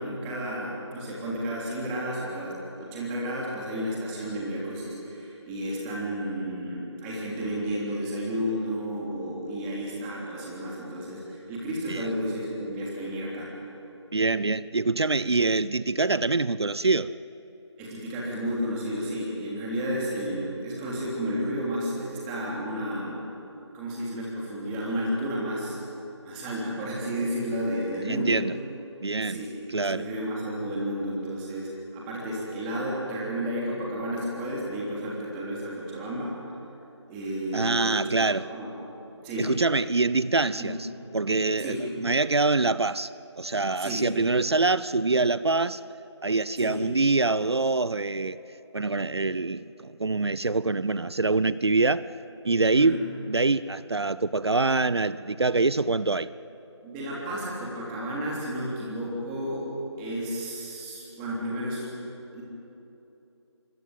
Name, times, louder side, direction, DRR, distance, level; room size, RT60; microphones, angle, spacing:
voice 1, 0.0-13.5 17.8-23.2 23.7-25.8 26.2-28.4 29.2-29.5 29.8-36.3 37.1-38.2 38.5-38.7 39.2-39.5 40.6-40.8 41.6-41.9 43.8-44.0 46.6-46.8 52.7-52.9 56.8-59.7 60.0-61.9 62.3-62.4, equal, 10° right, -5 dB, 3.2 m, -32 dB
voice 2, 14.1-17.2 28.1-28.5 29.0-29.4 29.7-30.1 37.5-38.5 39.4-40.9 41.1-43.1 43.4-45.8 46.2-48.4 48.7-52.0 52.4-53.0 53.3-56.3, right 3 dB, 60° right, 17 dB, 0.7 m, -25 dB
25.5 x 24.5 x 9.2 m, 3.0 s
figure-of-eight pair, 165°, 15 cm